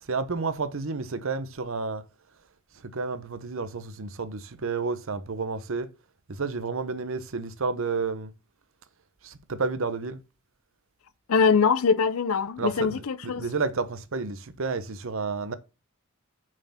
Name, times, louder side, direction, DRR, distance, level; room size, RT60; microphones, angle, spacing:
voice 1, 0.0-2.0 2.8-5.9 6.3-8.3 9.2-10.2 12.6-15.5, right 4 dB, 70° right, 0.8 m, -31 dB
voice 2, 11.3-13.4, left 5 dB, 90° left, 0.6 m, -23 dB
6.2 x 4.5 x 5.6 m
head